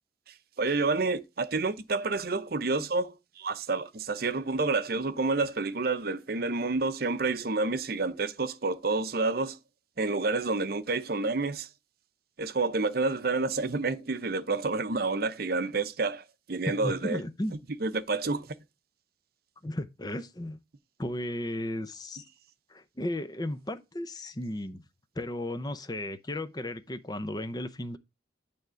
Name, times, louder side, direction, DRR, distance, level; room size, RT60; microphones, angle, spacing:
voice 1, 0.6-9.6 10.0-11.7 12.4-17.2 17.8-18.5, right 3 dB, 55° right, 0.7 m, -29 dB
voice 2, 16.7-17.6 19.6-20.6 21.0-22.2 22.7-24.8 25.2-28.0, left 1 dB, 20° left, 0.7 m, -34 dB
9.3 x 3.5 x 6.3 m
head